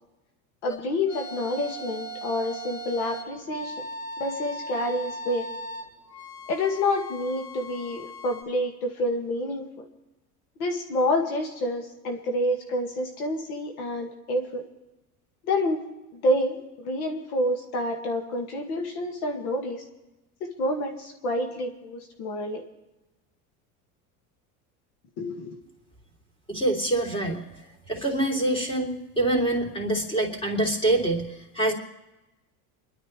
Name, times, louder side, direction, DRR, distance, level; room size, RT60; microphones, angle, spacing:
voice 1, 0.6-3.7 4.2-5.5 6.5-9.8 10.6-14.6 15.4-15.8 16.1-19.8 20.4-22.6 25.2-25.6, left 1 dB, 80° left, 2 dB, 2.2 m, -28 dB
sound 1, 0.7-8.4, right 1 dB, 50° left, 4.6 m, -38 dB
voice 2, 26.5-27.5 27.9-31.7, right 1 dB, 10° left, 1 dB, 3.3 m, -25 dB
29.0 x 12.0 x 3.3 m, 1.0 s
supercardioid pair, 105°, 43 cm